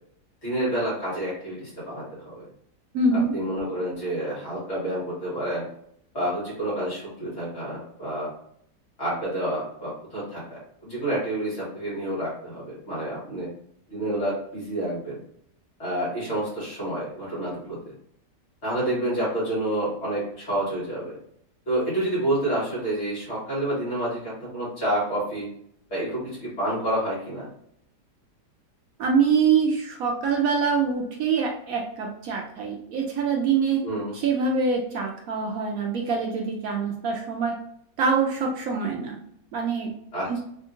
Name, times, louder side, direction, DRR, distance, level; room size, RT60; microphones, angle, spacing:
voice 1, 0.4-2.5 3.1-5.6 6.1-8.3 9.0-13.5 13.9-15.2 15.8-17.8 18.6-21.2 21.7-25.5 25.9-27.5 33.8-34.1 40.1-40.4, right 1 dB, 40° left, -8 dB, 1.8 m, -29 dB
voice 2, 2.9-3.3 29.0-33.8 34.1-37.5 38.0-39.2 39.5-39.9 40.3-40.4, right 5 dB, 70° right, 0 dB, 0.8 m, -24 dB
3.5 x 2.6 x 2.4 m, 0.70 s
omnidirectional pair, 1.8 m